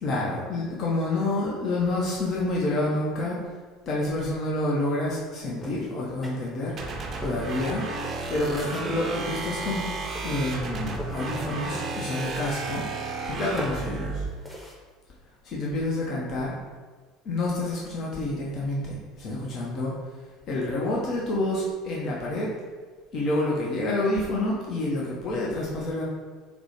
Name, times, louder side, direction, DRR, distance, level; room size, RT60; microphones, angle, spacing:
voice 1, 0.0-3.4 3.9-6.8 7.2-7.8 8.3-9.9 10.2-12.8 13.3-14.2 15.4-16.6 17.2-19.9 20.5-22.5 23.1-26.0, left 2 dB, 45° left, -4 dB, 0.6 m, -28 dB
sound 1, 5.6-6.8 7.2-9.0 9.7-9.9 10.2-11.3 11.6-12.6 12.9-14.7, equal, 5° left, 0.7 m, -41 dB
sound 2, 6.8-14.3, right 3 dB, 40° right, 0.5 m, -33 dB
4.2 x 2.1 x 2.8 m, 1.4 s
figure-of-eight pair, 65°, 0 cm